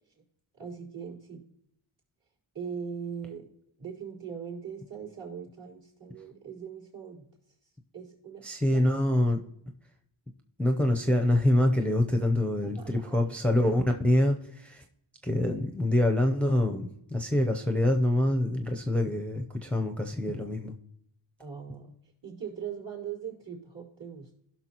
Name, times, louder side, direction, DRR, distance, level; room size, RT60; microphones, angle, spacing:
voice 1, 0.6-1.4 2.5-3.5 3.8-7.3 7.9-8.4 8.7-9.2 12.6-13.3 21.4-22.0 22.2-24.3, right 7 dB, 60° right, -6 dB, 4.1 m, -40 dB
voice 2, 8.4-9.4 10.6-14.8 15.2-20.7, left 1 dB, 5° left, 4 dB, 0.7 m, -25 dB
16.5 x 5.9 x 3.0 m, 0.75 s
wide cardioid pair, 90°, 49 cm